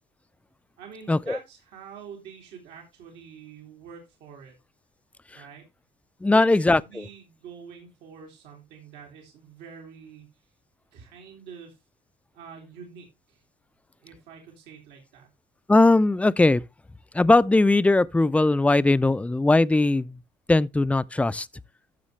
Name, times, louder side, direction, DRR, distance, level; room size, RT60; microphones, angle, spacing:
voice 1, 0.8-4.6 5.3-5.6 6.2-10.3 10.9-11.8 12.3-13.4 14.0-15.3, right 7 dB, 85° right, 2.8 m, -46 dB
voice 2, 6.2-7.1 15.7-16.6 17.1-20.2 20.5-21.5, left 2 dB, 10° left, 0.4 m, -20 dB
12.5 x 6.3 x 3.2 m
cardioid pair, 110°, 17 cm